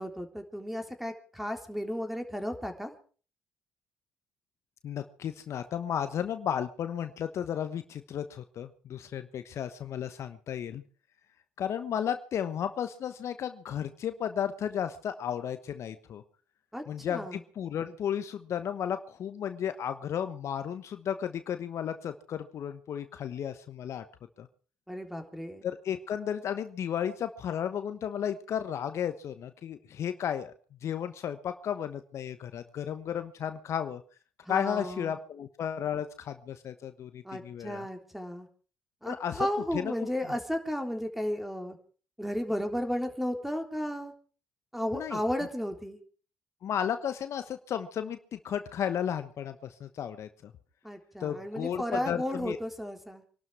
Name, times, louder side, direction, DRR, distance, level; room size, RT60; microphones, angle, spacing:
voice 1, 0.0-3.0 16.7-17.4 24.9-25.6 34.5-35.1 37.2-38.5 39.0-41.8 42.2-44.1 44.7-46.0 50.8-53.2, equal, 5° right, 5 dB, 3.6 m, -34 dB
voice 2, 4.8-10.8 11.6-16.2 16.9-24.0 24.4-24.5 25.6-30.5 30.8-34.0 34.5-37.9 39.1-39.5 39.7-39.9 44.9-45.2 46.6-50.5 51.2-52.6, left 9 dB, 60° left, 10 dB, 1.1 m, -34 dB
24.5 x 12.5 x 4.8 m, 0.41 s
hypercardioid pair, 45°, 5 cm